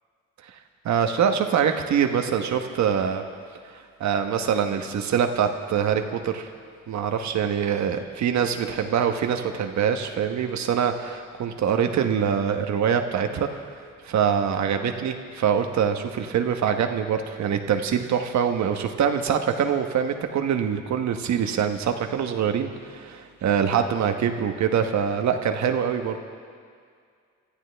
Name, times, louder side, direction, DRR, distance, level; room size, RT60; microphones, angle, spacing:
voice 1, 0.8-3.2 4.0-6.5 6.9-13.5 14.0-26.2, right 8 dB, 65° right, 6 dB, 1.2 m, -24 dB
27.5 x 13.0 x 3.4 m, 2.1 s
cardioid pair, 90°, 30 cm